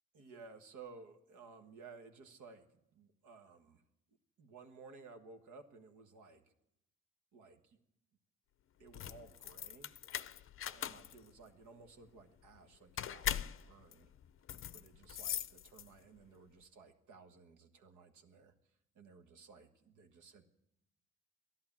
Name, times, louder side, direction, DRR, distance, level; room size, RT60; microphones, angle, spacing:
voice 1, 0.1-3.8 4.4-6.4 7.3-7.8 8.8-9.9 10.7-14.1 14.7-18.5 18.9-20.5, right 4 dB, 75° right, 7 dB, 1.5 m, -57 dB
sound 1, 8.8-16.2, left 10 dB, 45° left, 0.5 m, -42 dB
13.5 x 11.5 x 7.3 m, 0.83 s
cardioid pair, 90°, 30 cm